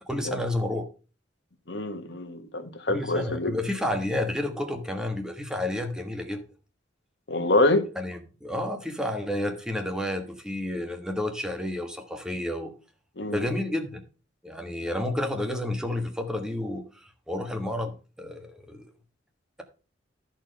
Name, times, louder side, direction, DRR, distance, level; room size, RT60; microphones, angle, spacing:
voice 1, 0.1-0.8 2.9-6.4 8.0-12.7 13.2-14.0 14.4-18.9, left 1 dB, 5° right, 1.4 m, -30 dB
voice 2, 1.7-3.5 7.3-7.9 13.2-13.5, left 2 dB, 60° left, 1.5 m, -26 dB
13.5 x 4.5 x 5.3 m
head